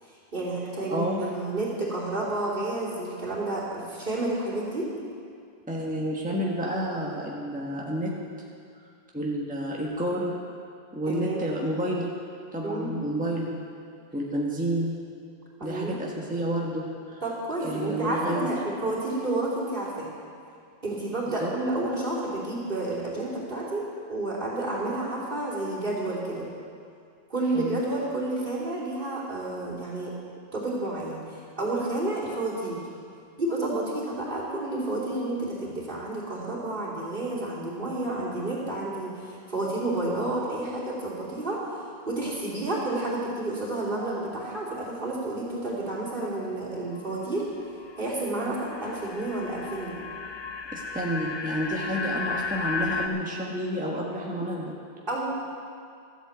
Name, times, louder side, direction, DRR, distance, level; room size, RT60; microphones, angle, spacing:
voice 1, 0.0-4.9 11.1-11.5 12.6-12.9 15.6-16.0 17.2-20.1 20.8-26.5 27.3-30.1 30.5-32.8 33.4-41.7 42.1-47.5 48.0-50.0 55.1-55.3, right 2 dB, 55° right, -7 dB, 3.4 m, -30 dB
voice 2, 0.9-1.2 5.7-8.1 9.1-10.4 10.9-12.1 12.5-13.6 14.1-15.0 15.6-17.2 17.6-18.5 21.3-21.5 27.5-27.8 50.7-54.7, equal, 10° right, -3 dB, 1.4 m, -30 dB
sound 1, 43.9-47.2 47.6-53.1, left 4 dB, 30° left, 0.6 m, -35 dB
13.5 x 8.9 x 8.0 m, 2.3 s
omnidirectional pair, 1.1 m